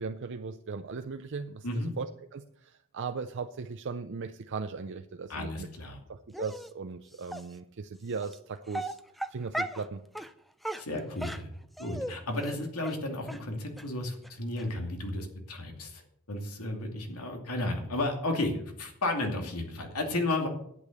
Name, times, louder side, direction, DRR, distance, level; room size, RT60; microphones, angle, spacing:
voice 1, 0.0-5.7 6.1-9.0 9.3-10.0, right 4 dB, 55° right, 7 dB, 0.5 m, -38 dB
voice 2, 5.3-6.0 10.8-11.5 11.8-16.0 16.3-20.5, left 2 dB, 90° left, 3 dB, 2.5 m, -33 dB
Dog, 6.3-6.7 7.3-7.4 8.2-8.4 8.7-9.9 10.2-10.3 10.6-12.1 12.4-12.6 12.8-13.0 13.3-13.4 13.8-13.9 14.2-14.3 14.6-14.7, right 1 dB, ahead, 0.5 m, -36 dB
11.0 x 8.7 x 6.6 m, 0.72 s
head